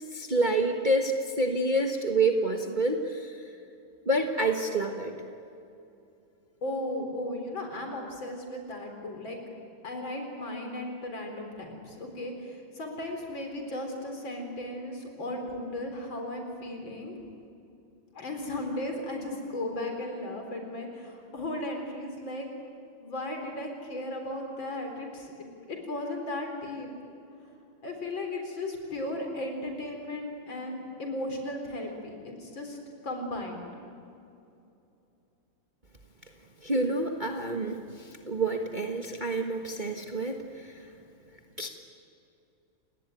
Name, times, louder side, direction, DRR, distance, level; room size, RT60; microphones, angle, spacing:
voice 1, 0.1-3.3 4.0-5.1 36.6-40.7 41.6-41.7, right 2 dB, 25° right, 3 dB, 1.4 m, -28 dB
voice 2, 6.6-9.4 9.8-17.1 18.1-22.5 23.0-25.3 25.7-26.9 27.8-32.8 33.0-33.6, left 1 dB, 60° left, 3 dB, 5.0 m, -36 dB
29.5 x 19.5 x 9.3 m, 2.7 s
omnidirectional pair, 2.3 m